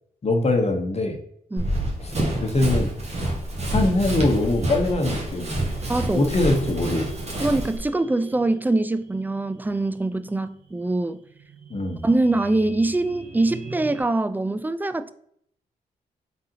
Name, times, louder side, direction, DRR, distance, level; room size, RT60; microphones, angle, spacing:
voice 1, 0.2-1.2 2.0-2.1 2.4-2.9 3.7-5.6 6.1-7.3 11.7-12.0, left 2 dB, 40° left, 1.0 m, -23 dB
Run, 1.6-7.8, right 1 dB, 40° right, 1.3 m, -27 dB
sound 1, 3.9-14.0, right 4 dB, 60° right, 0.8 m, -44 dB
voice 2, 5.9-6.3 7.4-11.2 12.0-15.1, right 2 dB, 10° right, 0.3 m, -23 dB
4.1 x 3.7 x 2.8 m
supercardioid pair, 45°, 17 cm